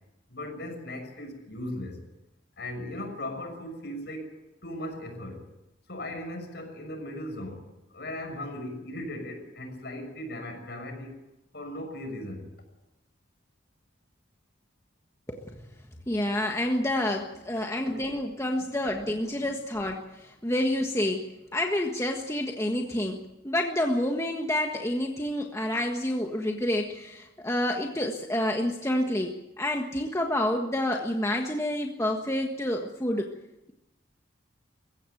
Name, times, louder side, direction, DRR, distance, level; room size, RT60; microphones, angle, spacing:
voice 1, 0.3-2.0 2.6-5.4 5.9-11.2 11.5-12.5 17.9-18.0 19.4-19.6, left 1 dB, 60° left, 5 dB, 6.2 m, -38 dB
voice 2, 16.1-21.2 21.5-33.3, left 1 dB, 15° left, 2 dB, 1.5 m, -28 dB
22.0 x 16.0 x 9.1 m, 0.93 s
head